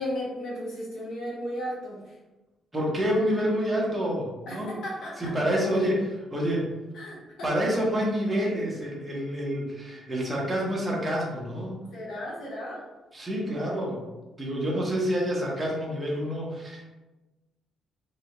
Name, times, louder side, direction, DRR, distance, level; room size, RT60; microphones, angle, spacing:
voice 1, 0.0-2.2 4.5-5.3 6.9-7.7 11.9-12.8, equal, 65° left, -4 dB, 0.9 m, -35 dB
voice 2, 2.7-4.8 5.2-6.7 7.4-11.8 13.1-14.0 14.4-16.8, equal, 10° right, -4 dB, 0.9 m, -28 dB
3.6 x 3.3 x 3.0 m, 1.1 s
cardioid pair, 155°, 0 cm